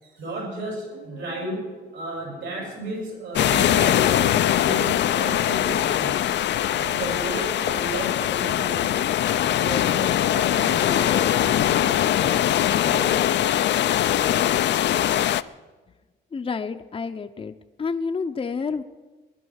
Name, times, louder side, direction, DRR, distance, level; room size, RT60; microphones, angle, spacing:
voice 1, 0.0-6.2 6.7-8.9 9.3-12.4 12.8-13.2, right 2 dB, 70° right, -1 dB, 7.2 m, -34 dB
sound 1, 3.4-15.4, left 11 dB, 65° left, 0.5 m, -22 dB
voice 2, 16.3-17.5 17.8-18.8, left 5 dB, 30° left, 6 dB, 0.7 m, -29 dB
19.0 x 11.0 x 6.5 m, 1.3 s
cardioid pair, 90°, 20 cm